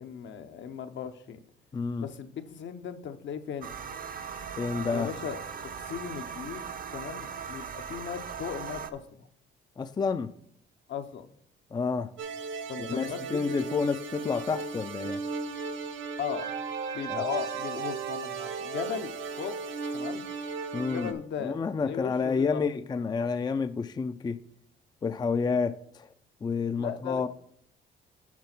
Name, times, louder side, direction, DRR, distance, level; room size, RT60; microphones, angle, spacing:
voice 1, 0.0-1.4 2.0-3.7 4.9-9.3 10.9-11.3 12.7-13.4 16.2-16.5 16.9-19.6 19.9-20.2 20.7-22.6 26.8-27.3, left 8 dB, 65° left, 0.9 m, -37 dB
voice 2, 1.7-2.1 4.6-5.1 9.8-10.3 11.7-12.1 12.8-15.2 17.1-17.2 20.7-24.4 25.0-26.1 26.4-27.3, left 5 dB, 20° left, 0.4 m, -29 dB
sound 1, 3.6-8.9, right 7 dB, 45° right, 0.7 m, -39 dB
sound 2, 12.2-21.1, right 5 dB, 75° right, 1.0 m, -35 dB
8.5 x 4.2 x 5.9 m
cardioid pair, 90°, 20 cm